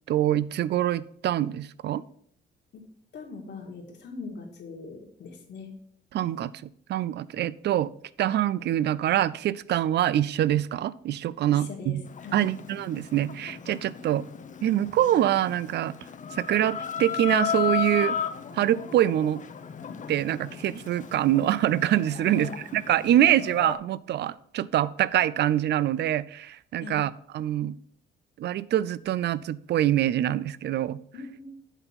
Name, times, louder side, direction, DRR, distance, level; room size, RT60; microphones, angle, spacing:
voice 1, 0.1-2.0 6.1-7.9 8.2-12.0 12.3-14.2 14.6-16.0 16.3-18.2 18.5-19.4 20.1-27.8 28.4-31.0, right 12 dB, 60° right, 20 dB, 0.4 m, -25 dB
voice 2, 3.1-5.7 11.5-12.5 22.2-22.6 26.8-27.0 31.1-31.4, left 4 dB, 60° left, 1 dB, 1.9 m, -40 dB
Chicken rooster, 12.0-23.8, left 7 dB, 40° left, 0.6 m, -35 dB
8.1 x 3.9 x 5.8 m, 0.65 s
cardioid pair, 90°, 20 cm